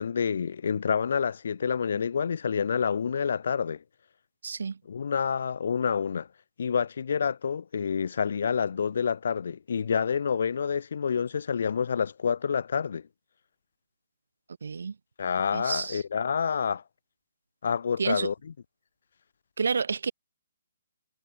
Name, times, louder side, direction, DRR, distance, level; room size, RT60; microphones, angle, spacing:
voice 1, 0.0-3.8 4.9-6.3 6.6-13.0 15.2-16.8 17.6-18.3, left 6 dB, 65° left, 0.5 m, -28 dB
voice 2, 4.4-4.8 14.6-14.9 15.5-16.0 18.0-18.3 19.6-20.1, right 5 dB, 75° right, 1.3 m, -29 dB
hypercardioid pair, 145°, 0 cm